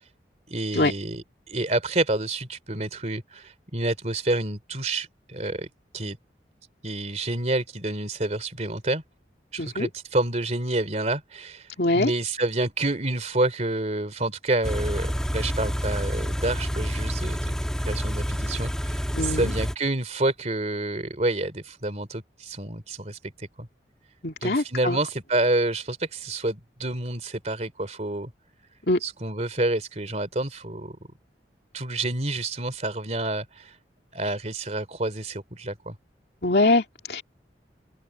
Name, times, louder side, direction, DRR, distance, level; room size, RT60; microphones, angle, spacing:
voice 1, 0.5-5.7 5.9-6.2 6.8-9.0 9.5-11.7 11.9-15.1 15.3-17.5 17.9-23.7 24.4-28.3 29.0-31.0 31.7-33.8 34.1-35.9, right 2 dB, 40° right, 3.1 m, -28 dB
voice 2, 9.6-9.9 11.8-12.1 19.2-19.5 24.2-25.0 28.9-29.0 36.4-37.2, left 2 dB, 65° left, 2.7 m, -23 dB
Car / Idling, 14.6-19.7, equal, 5° left, 1.7 m, -28 dB
open air
head